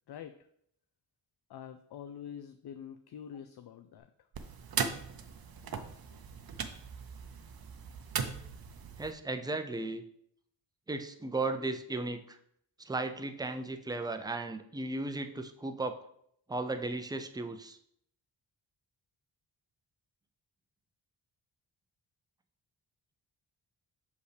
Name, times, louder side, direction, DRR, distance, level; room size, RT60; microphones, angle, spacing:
voice 1, 1.5-4.1, left 8 dB, 55° left, 8 dB, 0.5 m, -46 dB
sound 1, 4.3-9.1, right 6 dB, 50° right, 0.7 m, -38 dB
voice 2, 9.0-10.0 10.9-12.4 12.8-16.0 16.5-17.8, right 2 dB, 10° right, 7 dB, 0.4 m, -35 dB
6.3 x 5.3 x 3.3 m, 0.70 s
wide cardioid pair, 90°, 48 cm